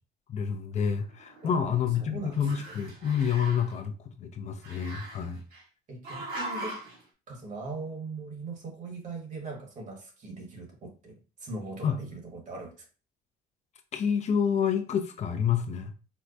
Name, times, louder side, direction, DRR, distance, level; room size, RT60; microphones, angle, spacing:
voice 1, 0.3-5.4 11.8-12.0 13.9-15.9, left 7 dB, 45° left, 7 dB, 0.5 m, -28 dB
Growling, 0.8-2.1 2.3-3.8 4.6-5.6 6.0-7.0, right 1 dB, 70° right, 1.4 m, -40 dB
voice 2, 1.4-1.7 2.1-2.7 5.9-6.8 7.3-11.1 11.4-12.7, right 3 dB, 45° right, 1 dB, 1.4 m, -40 dB
4.4 x 2.1 x 2.5 m, 0.34 s
cardioid pair, 110°, 17 cm